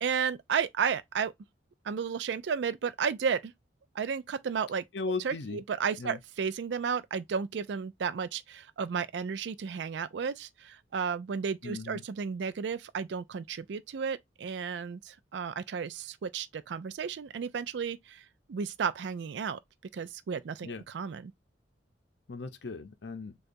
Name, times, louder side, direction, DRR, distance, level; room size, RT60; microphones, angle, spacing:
voice 1, 0.0-1.3 1.8-3.5 4.0-4.8 5.2-19.6 19.9-21.3, right 6 dB, 70° right, 0.4 m, -33 dB
voice 2, 4.9-5.6 6.0-6.2 11.6-12.0 20.6-20.8 22.3-23.3, left 4 dB, 70° left, 0.6 m, -37 dB
6.5 x 2.4 x 2.5 m
head